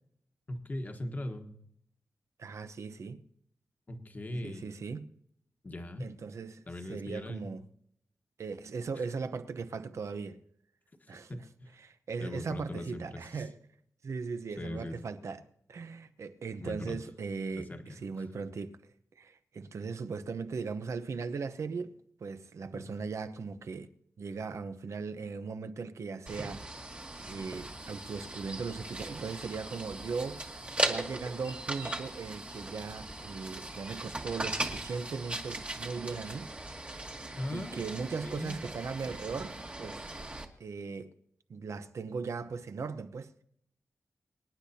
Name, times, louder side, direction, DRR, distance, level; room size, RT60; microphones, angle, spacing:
voice 1, 0.5-1.5 3.9-4.7 5.6-6.1 6.7-7.4 11.1-11.4 12.2-13.5 14.6-15.0 16.6-17.0 17.6-18.0 22.7-22.9 37.3-38.6, left 1 dB, 30° left, 1.3 m, -40 dB
voice 2, 2.4-3.2 4.4-5.1 6.0-7.6 8.4-10.4 11.1-11.4 11.8-13.6 14.0-15.4 15.7-18.8 19.2-23.9 24.2-26.7 27.2-30.5 30.8-36.5 36.9-37.0 37.5-40.1 40.6-41.1 41.5-43.3, right 5 dB, 65° right, 0.8 m, -38 dB
sound 1, 26.3-40.4, right 2 dB, 25° right, 1.4 m, -39 dB
25.0 x 10.0 x 2.8 m
wide cardioid pair, 150°, 5 cm